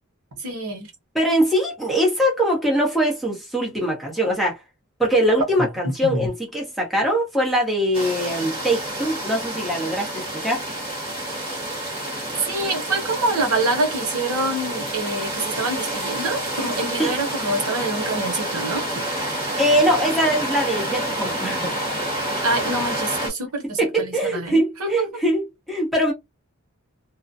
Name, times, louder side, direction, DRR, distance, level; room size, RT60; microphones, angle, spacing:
voice 1, 0.4-0.9 6.0-6.3 12.5-19.0 22.4-25.0, right 2 dB, 90° right, 1.0 m, -26 dB
voice 2, 1.1-4.6 5.0-10.6 17.0-17.1 19.6-21.7 23.8-26.1, equal, ahead, 0.8 m, -22 dB
sound 1, 7.9-23.3, right 1 dB, 25° right, 1.3 m, -28 dB
2.4 x 2.2 x 2.6 m
head